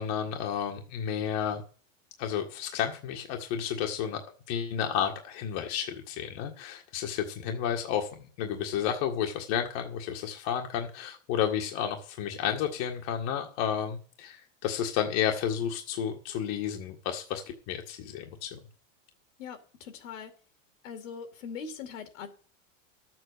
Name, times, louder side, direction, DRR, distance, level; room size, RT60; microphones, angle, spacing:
voice 1, 0.0-1.6 2.2-8.1 8.4-18.6, left 9 dB, 55° left, 3 dB, 1.8 m, -31 dB
voice 2, 19.4-20.3 20.8-22.3, left 6 dB, 80° left, 7 dB, 2.6 m, -41 dB
12.5 x 7.8 x 6.7 m, 0.41 s
supercardioid pair, 125°, 38 cm